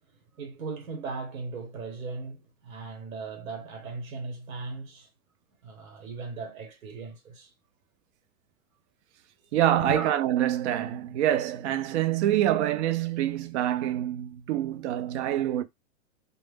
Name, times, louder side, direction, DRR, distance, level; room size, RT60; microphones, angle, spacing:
voice 1, 0.4-5.1 5.6-7.5 9.4-10.1, right 3 dB, 90° right, 1.0 m, -38 dB
voice 2, 9.5-15.6, right 12 dB, 55° right, 0.5 m, -26 dB
2.1 x 2.1 x 3.3 m
supercardioid pair, 145°, 40 cm